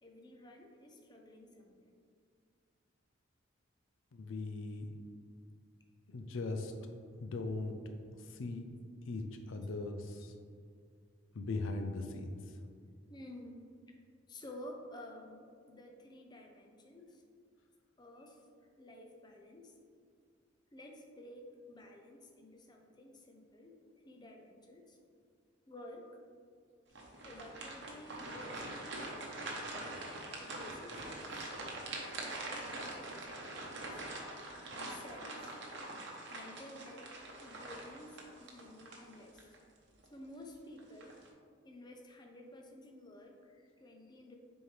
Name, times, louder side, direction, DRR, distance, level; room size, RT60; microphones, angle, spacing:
voice 1, 0.0-1.9 10.2-10.3 13.1-13.6 14.3-17.2 18.0-18.4 18.8-19.8 20.7-23.8 24.0-25.0 25.7-26.1 27.2-29.3 30.4-31.5 32.3-34.0 34.7-35.5 36.3-37.1 37.4-39.4 40.1-41.2 41.6-44.4, left 1 dB, 20° left, 2 dB, 0.6 m, -52 dB
voice 2, 4.1-4.9 6.1-6.7 7.2-7.7 8.4-8.6 9.1-10.3 11.3-12.3, left 3 dB, 70° left, 5 dB, 0.5 m, -39 dB
sound 1, 26.9-39.6 40.0-40.2 40.8-41.3, right 2 dB, 60° right, 0.9 m, -44 dB
6.6 x 4.4 x 3.3 m, 2.2 s
head